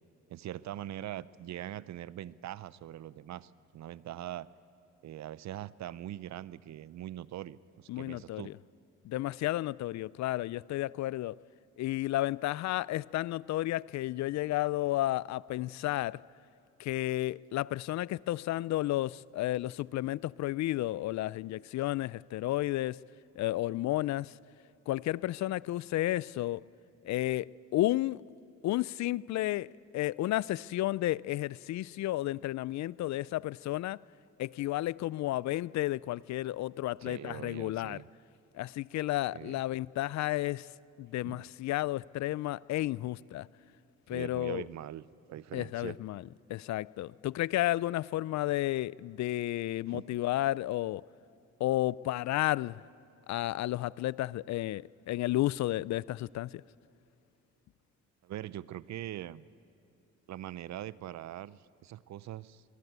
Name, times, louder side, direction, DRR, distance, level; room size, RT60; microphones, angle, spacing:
voice 1, 0.3-4.5 5.0-8.5 37.0-38.1 39.3-39.6 41.2-41.4 44.1-45.0 45.3-46.0 49.9-50.1 58.2-59.5 60.3-62.6, right 12 dB, 65° right, 0.7 m, -42 dB
voice 2, 7.9-8.5 9.0-11.3 11.8-16.2 16.8-23.0 23.4-24.3 24.9-26.6 27.0-28.2 28.6-34.0 34.4-38.0 38.5-40.7 41.0-43.5 44.1-44.6 45.5-46.2 46.5-51.0 51.6-52.8 53.3-56.6, left 15 dB, 65° left, 0.4 m, -32 dB
23.0 x 21.0 x 8.1 m
cardioid pair, 90°, 30 cm